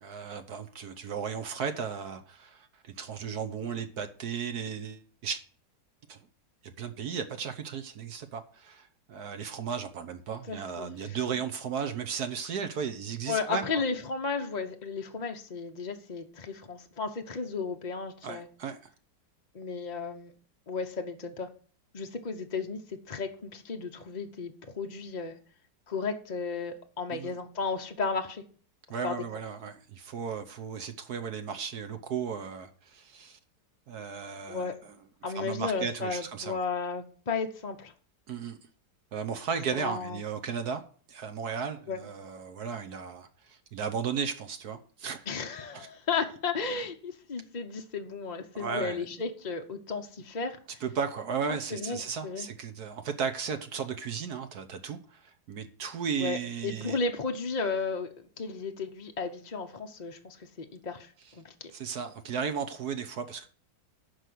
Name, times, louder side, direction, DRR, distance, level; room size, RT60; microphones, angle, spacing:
voice 1, 0.0-5.4 6.1-6.2 6.6-13.8 18.2-18.8 27.1-27.3 28.9-33.4 33.9-34.9 35.3-36.6 38.3-38.6 39.1-40.8 41.1-45.2 45.7-45.9 48.5-49.1 50.8-57.0 61.7-63.5, right 6 dB, 65° right, 1.4 m, -35 dB
voice 2, 10.5-11.2 13.3-18.5 19.5-20.3 20.7-21.5 21.9-25.4 25.9-28.4 29.0-29.1 34.5-34.8 35.2-37.9 39.7-40.2 41.9-42.0 45.3-50.8 51.7-52.5 56.2-58.1 58.4-61.7, left 4 dB, 35° left, 0.7 m, -34 dB
11.5 x 4.8 x 7.7 m
omnidirectional pair, 1.9 m